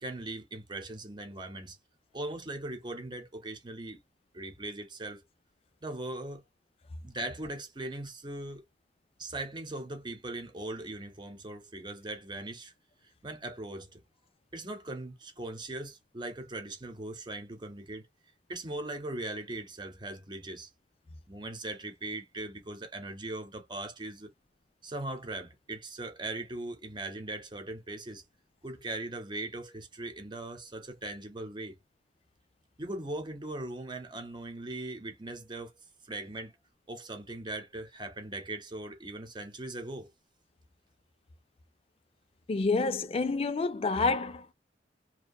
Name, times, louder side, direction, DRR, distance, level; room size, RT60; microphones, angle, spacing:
voice 1, 0.0-1.8 2.1-4.0 4.3-5.2 5.8-6.4 7.0-8.7 9.2-12.7 13.2-14.0 14.5-18.0 18.5-20.7 21.3-24.3 24.8-28.2 28.6-31.8 32.8-35.7 36.0-36.5 36.9-40.1, right 2 dB, 25° right, 0.8 m, -39 dB
voice 2, 42.5-44.5, left 3 dB, 30° left, 0.3 m, -28 dB
2.7 x 2.3 x 2.2 m
head